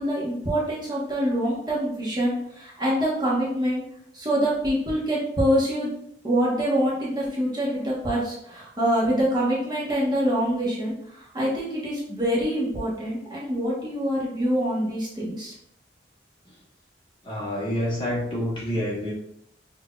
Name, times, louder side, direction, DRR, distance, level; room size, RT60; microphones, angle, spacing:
voice 1, 0.0-3.8 4.1-5.9 6.2-15.5, equal, 25° right, -6 dB, 1.0 m, -25 dB
voice 2, 17.2-19.1, equal, 25° left, -5 dB, 1.1 m, -27 dB
5.5 x 2.7 x 2.3 m, 0.74 s
head